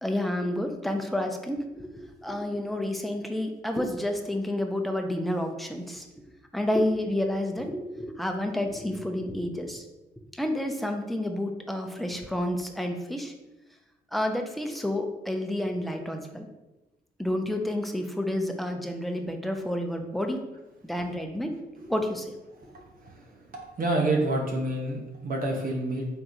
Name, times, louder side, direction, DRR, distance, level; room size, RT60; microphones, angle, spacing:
voice 1, 0.0-6.1 6.5-9.8 10.4-13.3 14.1-16.5 17.2-20.4 20.8-21.6 21.8-22.3, left 1 dB, ahead, 4 dB, 0.7 m, -30 dB
voice 2, 22.6-26.1, right 2 dB, 50° right, 0 dB, 0.8 m, -29 dB
4.3 x 3.4 x 2.6 m, 1.0 s
supercardioid pair, 50°, 18 cm